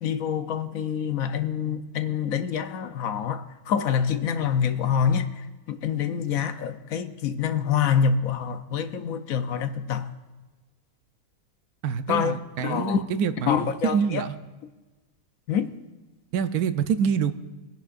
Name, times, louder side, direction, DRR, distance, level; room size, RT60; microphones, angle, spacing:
voice 1, 0.0-10.1 12.1-13.0 13.5-14.2 15.5-15.7, left 7 dB, 70° left, 1.1 m, -26 dB
voice 2, 11.8-14.4 16.3-17.3, right 7 dB, 85° right, 1.2 m, -26 dB
23.5 x 10.5 x 2.5 m
omnidirectional pair, 1.5 m